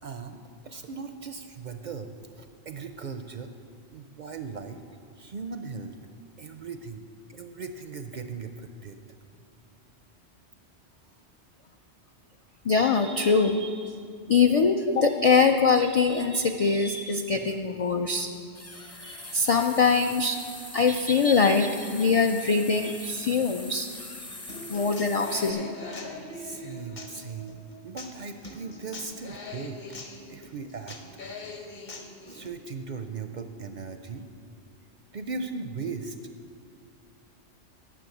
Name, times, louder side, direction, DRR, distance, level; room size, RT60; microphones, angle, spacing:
voice 1, 0.0-3.5 3.9-4.8 5.2-6.0 6.4-9.0 26.3-27.6 27.8-29.8 30.3-31.0 32.3-34.3 35.1-36.2, right 4 dB, 60° right, 7 dB, 0.5 m, -38 dB
voice 2, 12.6-14.0 14.3-18.3 19.0-20.4 20.7-23.9 24.7-25.7, left 4 dB, 65° left, 5 dB, 0.3 m, -23 dB
sound 1, 16.0-16.1 17.2-17.6 18.5-25.5, left 2 dB, 20° left, 0.5 m, -43 dB
Human voice / Acoustic guitar, 24.5-32.5, left 2 dB, 45° left, 1.1 m, -42 dB
10.0 x 6.1 x 7.8 m, 2.2 s
omnidirectional pair, 1.2 m